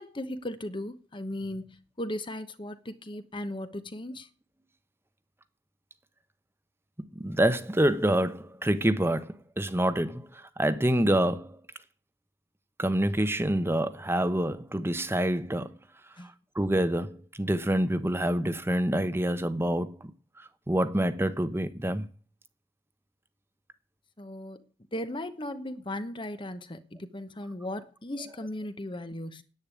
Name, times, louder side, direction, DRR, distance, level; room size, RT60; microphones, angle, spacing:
voice 1, 0.0-4.3 16.2-16.3 24.2-29.4, left 1 dB, 30° left, 1.0 m, -37 dB
voice 2, 7.2-11.6 12.8-15.7 16.5-20.1 20.4-22.1, right 1 dB, 15° right, 0.9 m, -27 dB
10.0 x 8.9 x 9.9 m
head